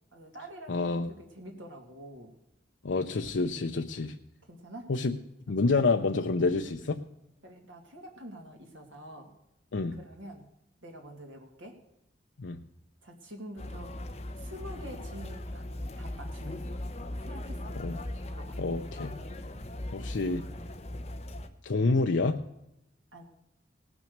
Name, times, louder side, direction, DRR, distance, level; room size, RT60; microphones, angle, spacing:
voice 1, 0.1-2.3 4.5-4.9 5.5-5.6 7.4-9.3 9.9-10.4 10.8-11.8 13.0-13.9 14.4-16.7 17.2-17.7 18.2-18.6 23.1-23.2, equal, 85° right, 2 dB, 2.5 m, -47 dB
voice 2, 0.7-1.1 2.8-4.1 4.9-5.1 5.5-7.0 9.7-10.0 12.4-12.6 17.8-18.0 18.6-19.1 19.9-20.4 21.6-22.4, left 3 dB, 70° left, 4 dB, 0.6 m, -28 dB
sound 1, 13.6-21.5, left 1 dB, 35° left, 0.8 m, -39 dB
18.5 x 6.2 x 6.6 m, 0.83 s
head